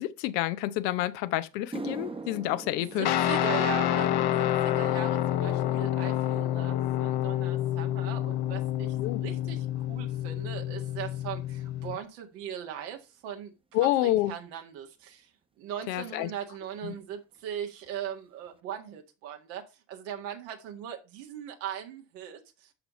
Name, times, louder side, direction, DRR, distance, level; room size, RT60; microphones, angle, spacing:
voice 1, 0.0-3.1 9.0-9.2 13.7-14.3 15.9-16.3 16.8-16.9, left 15 dB, 85° left, 0.8 m, -28 dB
sound 1, 1.0-1.1 1.5-10.0 10.3-10.7 11.5-11.6 14.3-14.4 16.1-16.2 16.4-16.6 16.9-17.4 17.8-17.9 18.5-18.6, right 3 dB, 10° right, 0.9 m, -46 dB
voice 2, 2.8-4.1 4.4-15.3 15.6-22.7, right 9 dB, 80° right, 1.9 m, -39 dB
Guitar, 3.0-12.0, left 12 dB, 50° left, 0.9 m, -28 dB
12.5 x 4.9 x 3.1 m
hypercardioid pair, 75°, 49 cm